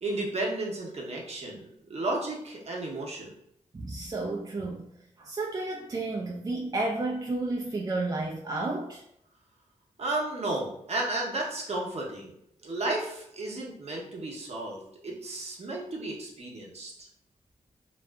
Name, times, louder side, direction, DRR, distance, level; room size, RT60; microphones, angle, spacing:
voice 1, 0.0-3.3 10.0-12.3 12.6-16.9, right 2 dB, 50° right, -2 dB, 0.8 m, -33 dB
voice 2, 3.7-4.9 5.2-9.0, right 2 dB, 30° right, -1 dB, 0.4 m, -31 dB
2.6 x 2.4 x 2.2 m, 0.75 s
cardioid pair, 50°, 14 cm